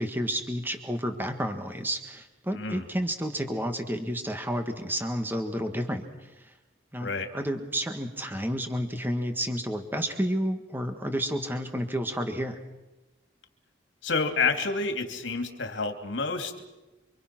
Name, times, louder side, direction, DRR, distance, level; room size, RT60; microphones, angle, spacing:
voice 1, 0.0-6.5 6.9-12.6, equal, 10° right, 6 dB, 1.8 m, -31 dB
voice 2, 2.5-2.8 7.0-7.3 14.0-16.7, left 4 dB, 80° left, 6 dB, 3.0 m, -29 dB
29.0 x 25.0 x 6.2 m, 1.1 s
head